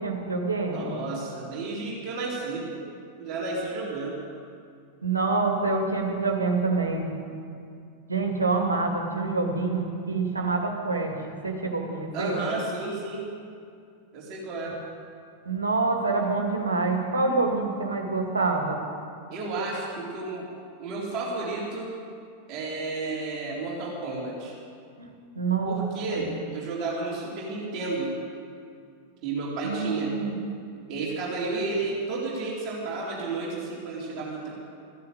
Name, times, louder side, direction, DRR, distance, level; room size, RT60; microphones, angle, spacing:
voice 1, 0.0-0.9 5.0-7.1 8.1-11.1 11.4-12.4 15.5-18.8 25.0-25.8 26.1-26.2 29.6-30.4, right 3 dB, 75° right, 1 dB, 2.4 m, -26 dB
voice 2, 0.6-2.8 3.2-4.2 12.1-13.3 14.1-14.8 19.3-20.5 20.8-22.0 22.5-24.5 25.6-28.2 29.2-30.2 30.9-34.5, right 3 dB, 40° right, -4 dB, 3.8 m, -32 dB
15.0 x 10.5 x 8.1 m, 2.3 s
figure-of-eight pair, 90°, 0 cm